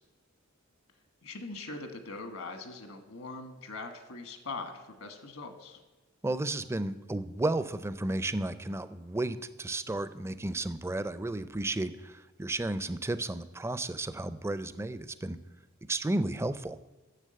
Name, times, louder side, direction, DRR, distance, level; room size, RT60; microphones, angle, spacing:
voice 1, 1.2-5.8, left 3 dB, 75° left, 7 dB, 1.4 m, -42 dB
voice 2, 6.2-15.4 15.9-16.8, right 2 dB, 15° right, 13 dB, 0.4 m, -33 dB
10.0 x 7.0 x 7.7 m, 1.2 s
head